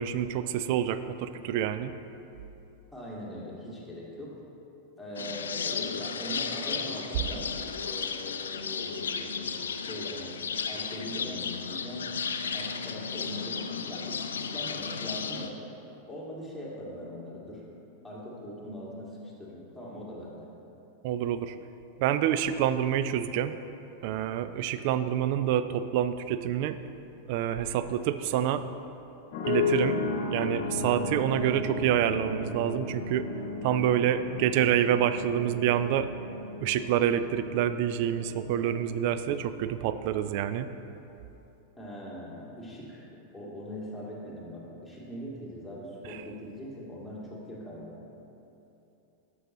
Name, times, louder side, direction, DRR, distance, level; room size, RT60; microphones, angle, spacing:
voice 1, 0.0-1.9 21.0-21.6 22.0-23.6 24.0-26.8 27.3-28.6 29.5-30.0 30.3-33.3 33.6-36.1 36.6-40.7 46.1-46.2, right 10 dB, 45° right, 12 dB, 0.3 m, -27 dB
voice 2, 2.9-4.4 5.0-10.3 10.7-12.1 12.5-15.6 16.1-17.6 18.0-20.5 41.8-43.1 43.3-48.0, equal, ahead, -7 dB, 2.0 m, -41 dB
sound 1, 5.2-15.5, left 6 dB, 70° left, 0.4 m, -34 dB
sound 2, 29.3-39.3, left 3 dB, 50° left, 1.0 m, -34 dB
12.5 x 6.2 x 3.1 m, 2.9 s
figure-of-eight pair, 90°, 0 cm